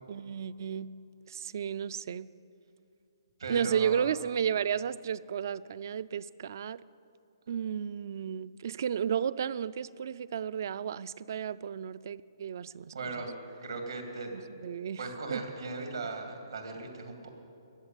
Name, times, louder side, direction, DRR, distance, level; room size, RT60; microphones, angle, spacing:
voice 1, 0.1-0.9 1.3-2.3 3.5-6.8 7.5-13.2 14.3-15.0 15.3-15.4, right 8 dB, 45° right, 18 dB, 0.3 m, -33 dB
voice 2, 3.4-4.1 12.9-13.3 13.6-14.4 15.0-17.3, right 3 dB, 80° right, 3 dB, 2.5 m, -38 dB
14.5 x 7.8 x 9.0 m, 2.6 s
hypercardioid pair, 170°, 2 cm